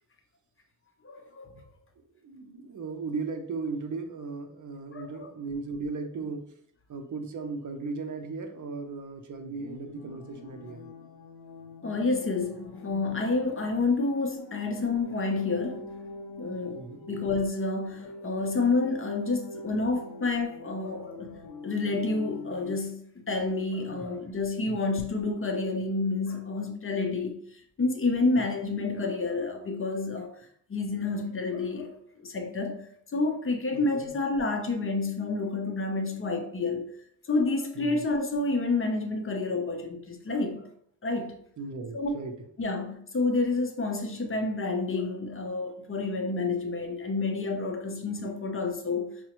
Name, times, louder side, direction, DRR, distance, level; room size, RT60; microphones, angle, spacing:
voice 1, 1.0-1.6 4.9-5.3 11.8-15.9 16.4-16.8 17.1-21.4 21.6-30.3 30.7-36.9 37.2-40.7 41.0-41.3 41.9-42.2 42.6-49.1, left 3 dB, 35° left, 0.6 m, -29 dB
voice 2, 2.2-6.5 6.9-10.9 16.7-17.1 23.9-24.0 24.7-24.8 28.4-28.5 33.7-34.1 37.7-38.0 41.6-42.4, right 4 dB, 50° right, 0.6 m, -37 dB
sound 1, 9.3-22.8, left 2 dB, 80° left, 0.6 m, -44 dB
5.6 x 2.1 x 2.9 m
cardioid pair, 105°, 40 cm